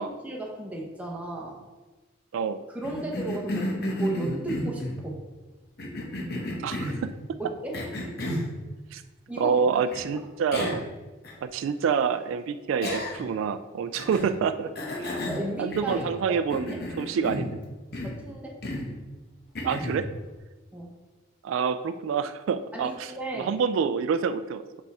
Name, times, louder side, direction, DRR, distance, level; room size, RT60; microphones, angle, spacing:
voice 1, 0.0-1.6 2.7-5.2 7.4-7.8 9.3-9.9 15.3-16.4 16.7-16.8 18.0-18.6 20.7-21.0 22.7-23.5, right 1 dB, 5° right, -1 dB, 0.8 m, -35 dB
Cough, 2.8-5.0 5.8-7.1 7.7-8.5 9.9-10.0 10.5-10.9 11.2-11.3 12.8-13.4 13.9-14.3 14.7-16.2 16.5-17.6 17.9-18.2 18.6-18.9 19.5-20.0, left 1 dB, 55° left, 1.0 m, -32 dB
voice 2, 6.6-7.1 8.9-9.0 9.4-10.8 11.4-15.2 15.6-17.5 19.6-20.1 21.4-23.1 23.4-24.6, right 6 dB, 80° right, 12 dB, 0.3 m, -27 dB
6.9 x 3.5 x 4.2 m, 1.2 s
head